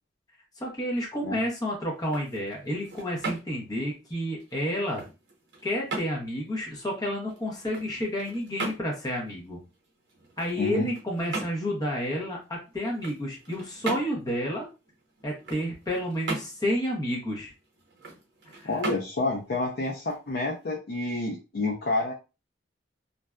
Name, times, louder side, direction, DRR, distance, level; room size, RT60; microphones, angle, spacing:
voice 1, 0.6-5.0 5.6-9.6 10.4-14.7 15.2-17.5 18.5-18.7, equal, 20° left, -2 dB, 0.7 m, -30 dB
sound 1, 1.9-20.7, right 3 dB, 65° right, 0.8 m, -40 dB
voice 2, 10.6-10.9 18.6-22.1, left 2 dB, 50° left, -1 dB, 0.4 m, -29 dB
2.5 x 2.2 x 2.2 m, 0.29 s
head